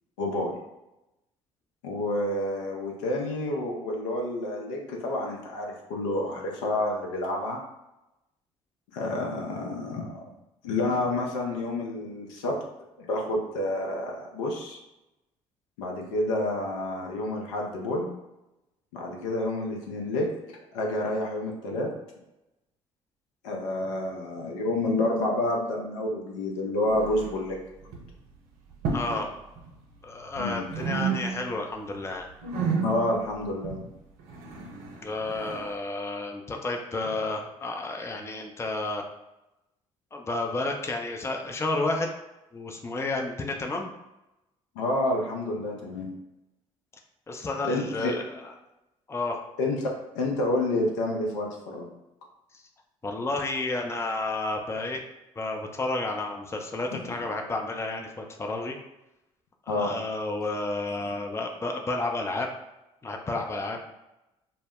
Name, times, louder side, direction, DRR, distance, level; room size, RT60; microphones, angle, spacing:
voice 1, 0.2-0.6 1.8-7.6 8.9-10.1 10.6-12.6 13.0-14.8 15.8-18.1 18.9-20.3 20.7-21.9 23.4-27.6 30.4-30.6 32.8-33.8 44.8-46.1 47.6-48.1 49.6-49.9 50.1-51.9 59.7-59.9, left 1 dB, 75° left, 0 dB, 0.5 m, -29 dB
sound 1, 26.9-27.6 27.8-28.2 28.7-29.3 29.6-30.4 30.7-31.6 31.9-35.7, right 5 dB, 65° right, 0.5 m, -32 dB
voice 2, 28.9-29.3 30.0-32.3 35.0-39.0 40.1-42.1 42.5-43.9 47.3-48.4 49.1-49.4 53.0-55.0 55.4-58.8 59.7-62.5 63.0-63.8, left 2 dB, 15° left, 2 dB, 0.5 m, -31 dB
2.1 x 2.0 x 3.5 m, 0.95 s
hypercardioid pair, 50°, 16 cm